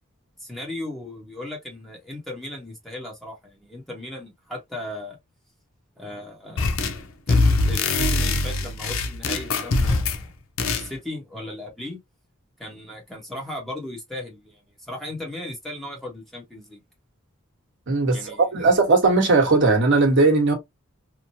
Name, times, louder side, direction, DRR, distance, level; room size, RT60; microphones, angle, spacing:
voice 1, 0.4-5.2 6.0-6.7 7.3-10.3 10.8-12.0 12.6-14.6 14.9-16.8 18.1-18.7, left 1 dB, ahead, 1.0 m, -36 dB
sound 1, 6.6-7.0 7.3-10.2 10.6-10.9, left 3 dB, 75° left, 0.6 m, -22 dB
voice 2, 17.9-20.5, right 3 dB, 60° right, 1.2 m, -18 dB
3.0 x 2.2 x 2.7 m
head